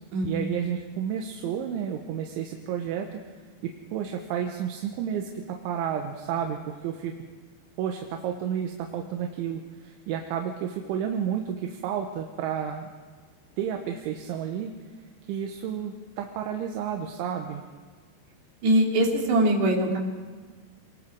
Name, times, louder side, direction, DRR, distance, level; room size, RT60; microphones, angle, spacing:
voice 1, 0.2-3.2 3.6-7.1 7.8-12.9 13.6-14.8 15.3-17.6, right 8 dB, 80° right, 2 dB, 3.5 m, -31 dB
voice 2, 18.6-20.0, right 1 dB, 65° right, -1 dB, 4.8 m, -22 dB
26.5 x 21.0 x 4.8 m, 1.5 s
omnidirectional pair, 5.5 m